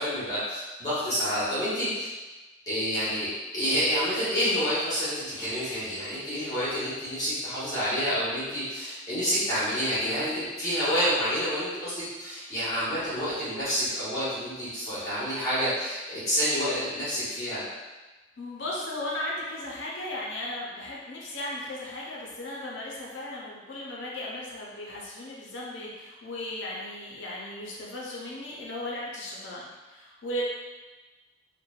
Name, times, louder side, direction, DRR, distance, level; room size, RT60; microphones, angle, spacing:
voice 1, 0.0-2.1 2.7-17.6, equal, 20° left, -12 dB, 1.0 m, -28 dB
voice 2, 18.4-30.4, left 1 dB, 70° left, -4 dB, 0.5 m, -36 dB
3.0 x 2.1 x 2.3 m, 1.2 s
head